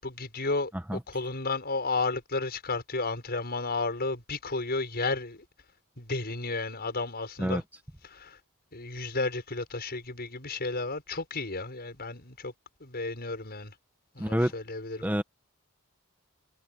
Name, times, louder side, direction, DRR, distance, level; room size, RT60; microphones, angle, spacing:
voice 1, 0.0-5.4 6.0-7.6 8.0-8.4 8.7-12.5 12.8-13.7 14.1-15.1, left 3 dB, 50° left, 6.9 m, -32 dB
voice 2, 14.2-14.5 15.0-15.2, equal, 10° right, 1.3 m, -27 dB
head